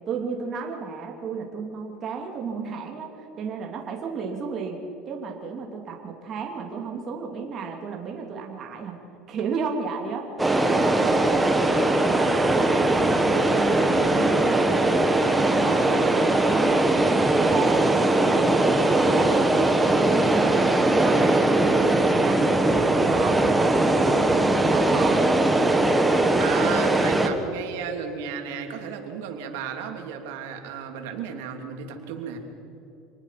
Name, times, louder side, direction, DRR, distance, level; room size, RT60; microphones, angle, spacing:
voice 1, 0.1-4.8 5.1-9.0 9.3-19.4 19.7-24.2 24.5-25.3, right 5 dB, 40° right, 0 dB, 2.9 m, -33 dB
sound 1, 10.4-27.3, right 2 dB, 10° right, 1.8 m, -20 dB
voice 2, 26.4-32.4, right 7 dB, 90° right, 4 dB, 2.9 m, -34 dB
26.5 x 19.5 x 5.9 m, 2.9 s
supercardioid pair, 130°, 0 cm